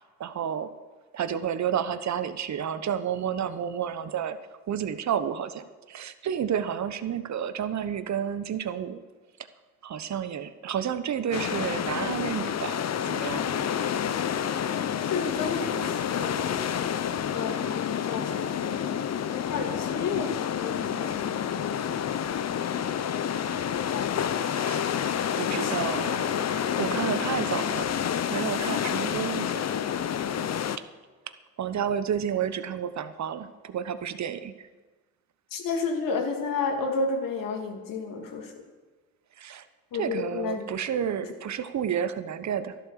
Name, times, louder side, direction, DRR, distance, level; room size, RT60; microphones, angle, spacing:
voice 1, 0.2-0.7 1.1-4.4 4.7-9.0 9.8-13.6 24.5-24.8 25.3-27.9 28.3-29.7 31.6-34.5 39.4-39.6 39.9-42.8, right 8 dB, 50° right, 12 dB, 1.2 m, -31 dB
sound 1, 11.3-30.8, left 9 dB, 45° left, 0.9 m, -29 dB
voice 2, 15.1-16.5 17.3-18.8 19.5-21.8 25.5-25.9 35.5-38.5 39.9-40.7 41.2-41.3, left 4 dB, 65° left, 3 dB, 2.7 m, -31 dB
12.5 x 11.5 x 6.9 m, 1.3 s
supercardioid pair, 60°, 36 cm